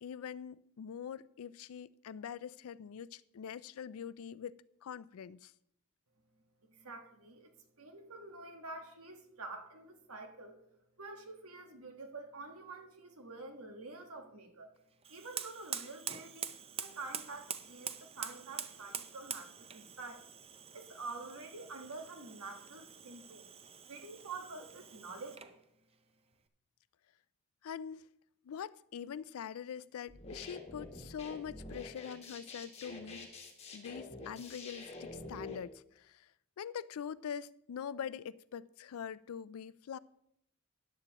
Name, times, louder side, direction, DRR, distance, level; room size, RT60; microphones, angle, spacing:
voice 1, 0.0-4.5 4.8-5.5 27.6-28.0 28.4-33.3 33.7-36.3 36.6-40.0, left 8 dB, 75° left, 0.4 m, -44 dB
voice 2, 6.7-10.6 11.0-14.7 15.1-20.3 20.6-23.5 23.9-25.5, right 3 dB, 85° right, 1.5 m, -48 dB
Fire, 15.0-25.6, right 8 dB, 25° right, 0.5 m, -45 dB
sound 1, 30.1-35.6, left 2 dB, 30° left, 1.6 m, -47 dB
13.5 x 10.0 x 3.0 m
head